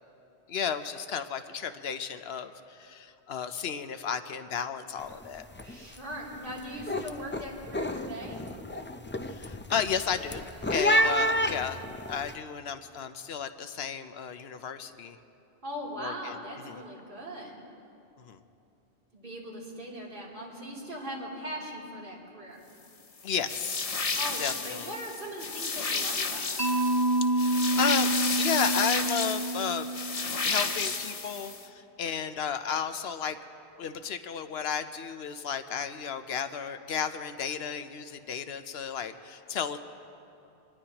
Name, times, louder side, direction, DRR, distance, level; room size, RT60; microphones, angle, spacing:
voice 1, 0.5-5.5 9.3-11.8 12.1-15.2 16.0-16.4 16.6-16.8 18.2-18.4 23.2-23.8 24.4-24.9 27.3-29.9 30.4-33.4 33.8-39.8, left 7 dB, 75° left, 10 dB, 0.9 m, -33 dB
sound 1, 5.0-5.3 5.5-6.0 6.4-12.3, equal, 20° left, 0.3 m, -30 dB
voice 2, 5.6-8.4 10.9-11.4 15.6-17.6 19.1-22.7 24.1-26.6, equal, 55° right, -6 dB, 3.3 m, -39 dB
sound 2, 23.5-31.6, left 4 dB, 40° left, 0.8 m, -32 dB
Mallet percussion, 26.6-30.6, right 2 dB, 40° right, 1.0 m, -28 dB
25.0 x 19.5 x 2.9 m, 2.8 s
omnidirectional pair, 1.1 m